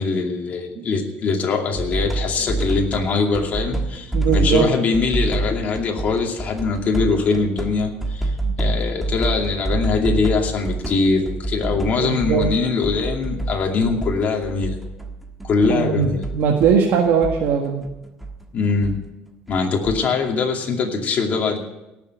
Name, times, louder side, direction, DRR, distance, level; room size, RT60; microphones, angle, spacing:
voice 1, 0.0-8.3 8.6-14.8 15.4-16.2 18.5-18.9 19.5-21.6, left 4 dB, 40° left, 1 dB, 2.5 m, -22 dB
sound 1, 1.8-3.1 3.3-15.8 16.0-19.0 19.3-20.1, right 2 dB, ahead, 1.4 m, -27 dB
voice 2, 4.1-4.7 8.4-8.5 12.0-12.5 15.7-17.8, right 6 dB, 70° right, 0 dB, 1.7 m, -19 dB
17.5 x 7.1 x 8.0 m, 0.96 s
cardioid pair, 140°, 4 cm